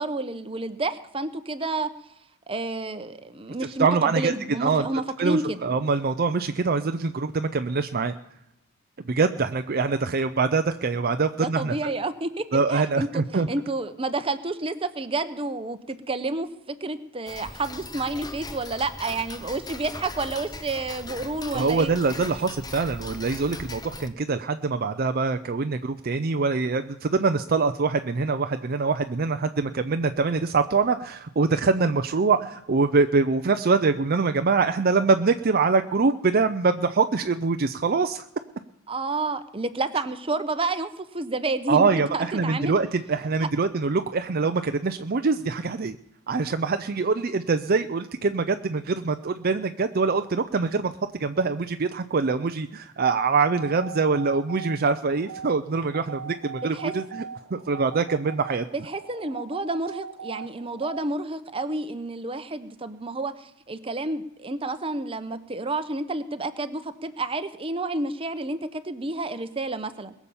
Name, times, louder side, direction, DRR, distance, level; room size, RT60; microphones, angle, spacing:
voice 1, 0.0-1.9 2.5-5.6 11.4-12.4 12.7-22.0 38.9-41.9 42.1-42.7 56.7-56.9 58.7-70.1, right 2 dB, 25° right, 10 dB, 0.9 m, -30 dB
voice 2, 3.8-4.3 4.6-4.8 5.2-8.1 9.0-11.7 12.5-13.5 21.5-38.3 41.7-46.0 46.3-50.9 51.2-57.2 57.5-58.7, right 4 dB, 45° right, 8 dB, 0.5 m, -24 dB
Tick-tock, 17.3-24.1, left 2 dB, 20° left, 0.8 m, -39 dB
sound 1, 53.6-61.0, right 6 dB, 85° right, 0.7 m, -40 dB
21.5 x 7.1 x 7.1 m, 0.86 s
head